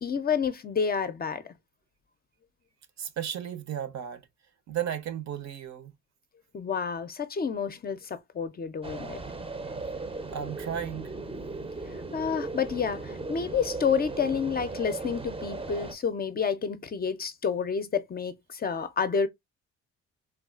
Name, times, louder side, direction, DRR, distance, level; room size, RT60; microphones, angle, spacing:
voice 1, 0.0-1.4 6.5-9.2 11.9-19.3, left 6 dB, 30° left, 0.4 m, -29 dB
voice 2, 3.0-4.2 4.7-5.9 10.3-11.1, right 9 dB, 60° right, 0.7 m, -34 dB
sound 1, 8.8-15.9, right 3 dB, 20° right, 0.5 m, -37 dB
3.5 x 2.3 x 2.3 m
cardioid pair, 90°, 30 cm